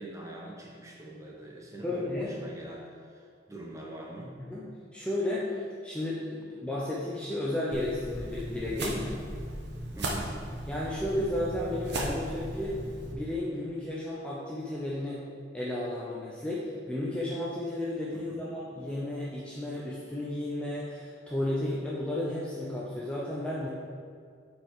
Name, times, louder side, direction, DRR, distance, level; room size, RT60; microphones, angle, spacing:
voice 1, 0.0-4.3 9.9-10.4 18.1-18.4, right 1 dB, 15° right, -2 dB, 1.1 m, -43 dB
voice 2, 1.8-2.3 4.5-9.2 10.7-12.8 13.1-15.3 15.5-23.7, left 1 dB, 5° left, -6 dB, 0.7 m, -33 dB
sound 1, 7.7-13.1, right 1 dB, 60° right, 1.0 m, -36 dB
7.7 x 4.5 x 4.9 m, 2.1 s
head